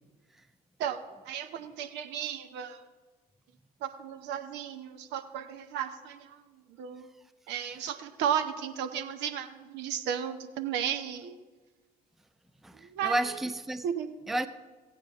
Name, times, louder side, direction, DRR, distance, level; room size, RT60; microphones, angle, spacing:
voice 1, 0.8-2.8 3.8-6.3 6.8-7.1 7.5-11.4 12.8-13.1 13.8-14.1, right 9 dB, 60° right, 0.8 m, -34 dB
voice 2, 12.6-13.9 14.3-14.5, right 1 dB, ahead, 0.5 m, -31 dB
15.5 x 8.8 x 3.6 m
figure-of-eight pair, 50°, 20 cm